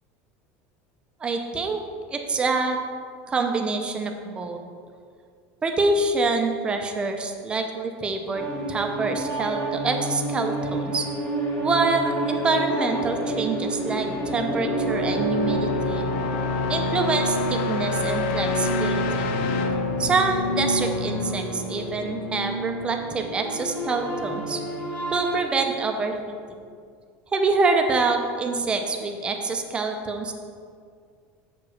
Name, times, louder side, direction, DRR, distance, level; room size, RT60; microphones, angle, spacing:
voice 1, 1.2-1.8 2.1-2.8 3.3-4.6 5.6-11.1 11.6-16.0 16.7-19.3 20.0-24.6 25.1-26.7 27.3-30.3, right 3 dB, 15° right, 4 dB, 0.6 m, -26 dB
sound 1, 8.4-25.5, right 1 dB, 20° left, 1.1 m, -29 dB
sound 2, 13.8-21.6, left 3 dB, 70° left, 0.6 m, -29 dB
7.0 x 4.9 x 6.3 m, 2.2 s
cardioid pair, 160°, 6 cm